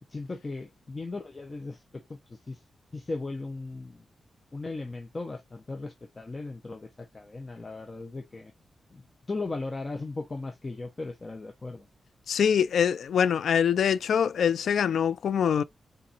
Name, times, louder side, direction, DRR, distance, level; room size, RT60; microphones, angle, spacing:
voice 1, 0.1-2.6 2.9-4.0 4.5-8.5 8.9-9.0 9.3-11.9, left 3 dB, 25° left, 0.6 m, -37 dB
voice 2, 12.3-15.6, left 8 dB, 75° left, 0.3 m, -24 dB
4.2 x 3.9 x 2.5 m
wide cardioid pair, 170°, 0 cm